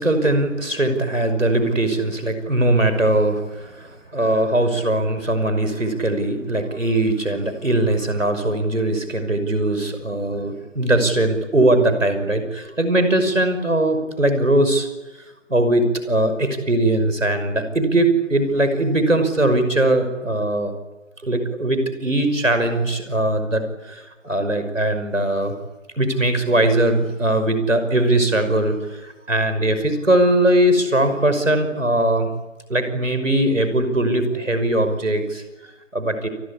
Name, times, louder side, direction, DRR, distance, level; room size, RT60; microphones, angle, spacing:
voice 1, 0.0-14.9 15.5-20.7 21.2-25.5 26.0-32.3 32.7-36.3, right 1 dB, 80° right, 9 dB, 5.7 m, -20 dB
29.0 x 21.5 x 8.6 m, 1.1 s
figure-of-eight pair, 155°, 38 cm